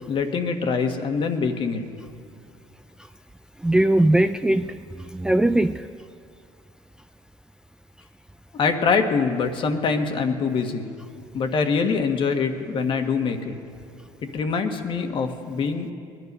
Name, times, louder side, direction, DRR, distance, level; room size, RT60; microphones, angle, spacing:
voice 1, 0.1-1.8 8.5-10.9 11.3-13.5 14.3-15.9, left 5 dB, 50° left, 6 dB, 1.5 m, -24 dB
voice 2, 3.6-5.9, right 1 dB, 5° right, 10 dB, 0.4 m, -20 dB
21.0 x 11.0 x 5.5 m, 2.3 s
supercardioid pair, 85°, 11 cm